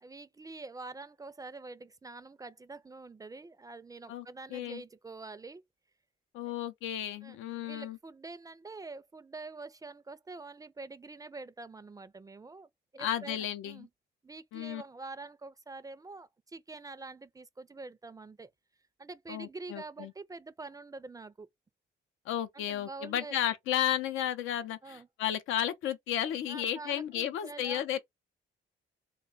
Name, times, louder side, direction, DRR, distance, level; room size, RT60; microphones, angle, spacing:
voice 1, 0.0-5.6 7.2-7.4 7.6-13.9 14.2-18.5 19.0-21.5 22.5-23.4 24.8-25.1 26.5-28.0, right 3 dB, 20° right, 0.4 m, -46 dB
voice 2, 4.5-4.8 6.3-8.0 13.0-13.9 14.5-14.8 19.3-20.1 22.3-28.0, left 11 dB, 90° left, 0.6 m, -33 dB
3.2 x 2.2 x 3.8 m
cardioid pair, 90°, 20 cm